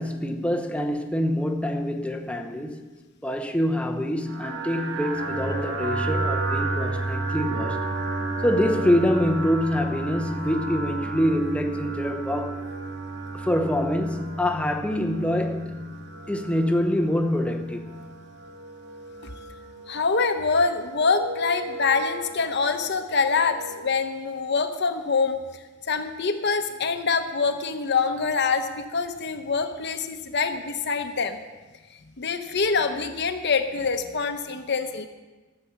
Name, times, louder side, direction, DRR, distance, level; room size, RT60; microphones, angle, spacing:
voice 1, 0.0-2.8 3.2-7.9 8.4-12.6 13.3-16.0 16.3-17.8, left 1 dB, 5° left, 0.8 m, -25 dB
sound 1, 4.3-24.0, right 2 dB, 60° right, 1.5 m, -32 dB
voice 2, 19.9-25.4 25.8-31.4 32.2-35.1, left 4 dB, 55° left, 0.9 m, -25 dB
13.5 x 7.0 x 7.2 m
head